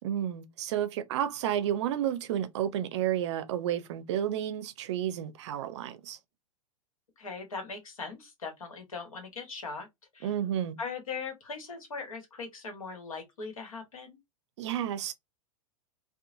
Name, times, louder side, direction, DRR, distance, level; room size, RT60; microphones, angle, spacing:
voice 1, 0.0-6.2 10.2-10.8 14.6-15.1, right 10 dB, 55° right, 0.5 m, -31 dB
voice 2, 7.2-9.9 10.1-10.3 10.8-14.2, left 4 dB, 70° left, 1.2 m, -40 dB
2.9 x 2.2 x 2.4 m
figure-of-eight pair, 95°, 18 cm